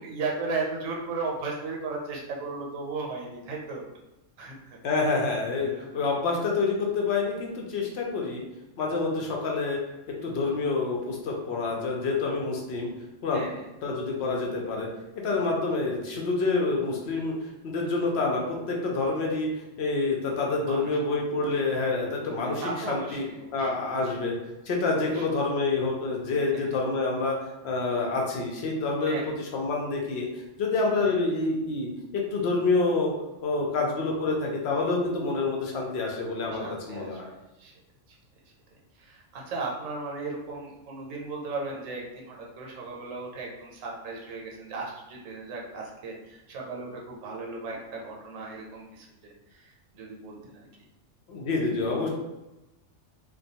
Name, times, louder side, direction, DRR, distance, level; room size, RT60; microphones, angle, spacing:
voice 1, 0.0-3.8 4.4-4.8 5.6-6.0 13.3-13.5 20.7-20.9 22.4-23.7 24.1-24.2 25.0-25.3 26.5-26.7 29.0-29.3 31.1-31.2 36.6-37.2 37.6-37.7 39.0-50.6, right 3 dB, 80° right, -1 dB, 1.0 m, -36 dB
voice 2, 4.8-8.4 8.8-9.8 10.1-12.9 13.2-13.4 13.8-14.9 15.2-17.3 17.6-19.5 19.8-23.2 23.5-24.4 24.7-33.1 33.4-37.3 51.3-52.1, left 3 dB, 65° left, -1 dB, 0.7 m, -27 dB
2.2 x 2.2 x 2.7 m, 0.98 s
omnidirectional pair, 1.3 m